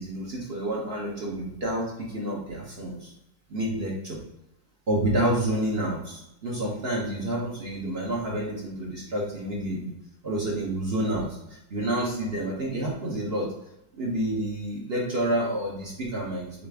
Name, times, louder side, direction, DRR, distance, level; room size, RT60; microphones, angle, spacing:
voice 1, 0.0-3.1 3.5-4.2 4.9-9.9 10.2-13.5 13.9-16.7, right 1 dB, 50° right, -2 dB, 0.8 m, -29 dB
4.2 x 3.7 x 3.4 m, 0.84 s
omnidirectional pair, 2.0 m